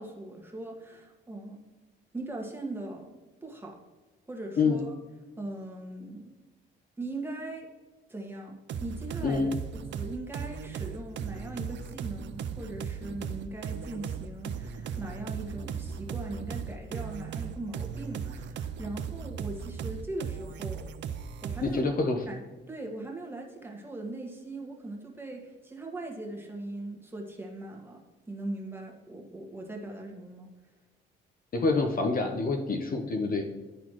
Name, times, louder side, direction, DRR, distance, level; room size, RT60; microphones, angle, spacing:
voice 1, 0.0-1.6 2.1-3.1 3.4-3.7 4.3-4.9 5.4-6.3 7.0-7.7 8.1-9.5 9.9-20.9 21.4-21.9 22.3-22.4 22.7-28.0 28.3-30.5, right 2 dB, 10° right, -1 dB, 1.4 m, -40 dB
sound 1, 8.7-21.8, right 7 dB, 65° right, 0.5 m, -37 dB
voice 2, 9.2-9.5 21.6-22.2 31.5-33.4, left 3 dB, 45° left, 4 dB, 0.9 m, -27 dB
11.5 x 4.1 x 3.0 m, 1.2 s
cardioid pair, 90°, 20 cm